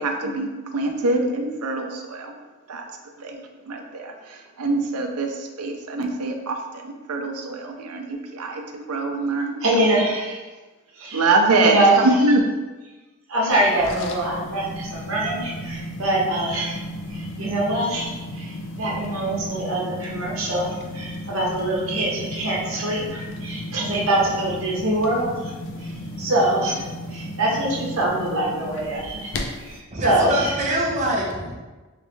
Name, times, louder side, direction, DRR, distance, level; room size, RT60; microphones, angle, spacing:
voice 1, 0.0-2.3 2.7-2.8 3.2-3.4 3.7-4.1 4.6-5.3 5.6-6.6 6.8-8.6 8.9-9.6 11.1-11.7 12.0-12.4, right 2 dB, 85° right, 4 dB, 0.5 m, -23 dB
voice 2, 9.6-10.4 10.9-11.3 11.6-12.1 13.3-16.8 17.1-25.5 25.8-29.3 29.6-30.5, right 1 dB, 65° right, -4 dB, 0.9 m, -24 dB
sound 1, 13.5-29.8, left 1 dB, 55° left, 0.4 m, -34 dB
voice 3, 29.9-31.6, right 1 dB, 35° right, -2 dB, 0.6 m, -24 dB
3.2 x 3.2 x 3.1 m, 1.2 s
head